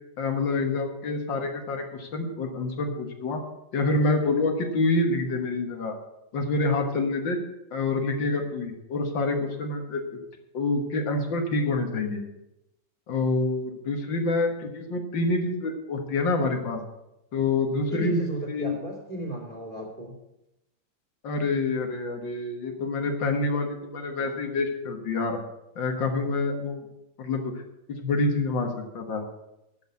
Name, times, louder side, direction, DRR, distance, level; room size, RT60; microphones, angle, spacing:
voice 1, 0.2-3.4 3.7-5.9 6.3-7.4 7.7-10.0 10.5-12.2 13.1-16.8 17.3-18.2 18.5-18.8 21.2-25.4 25.8-26.9 27.2-27.5 27.9-29.2, left 3 dB, 75° left, 4 dB, 2.2 m, -27 dB
voice 2, 17.9-20.2, equal, 25° right, 1 dB, 2.9 m, -34 dB
11.5 x 6.4 x 8.2 m, 0.87 s
omnidirectional pair, 2.0 m